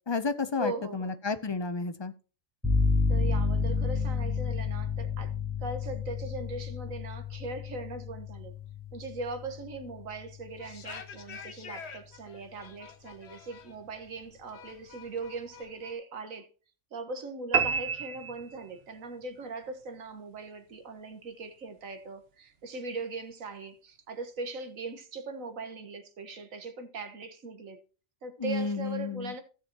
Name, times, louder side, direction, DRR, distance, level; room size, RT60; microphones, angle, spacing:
voice 1, 0.1-2.1 28.4-29.3, left 4 dB, 35° left, 0.4 m, -31 dB
voice 2, 0.6-1.2 3.1-5.3 5.6-8.6 8.9-16.5 16.9-27.8 28.2-29.4, right 3 dB, 85° right, 1.7 m, -40 dB
sound 1, 2.6-10.4, left 4 dB, 5° left, 3.9 m, -30 dB
sound 2, 10.5-15.9, left 6 dB, 55° left, 1.3 m, -47 dB
sound 3, 17.5-19.1, right 6 dB, 55° right, 1.1 m, -29 dB
16.0 x 7.0 x 2.8 m
omnidirectional pair, 1.4 m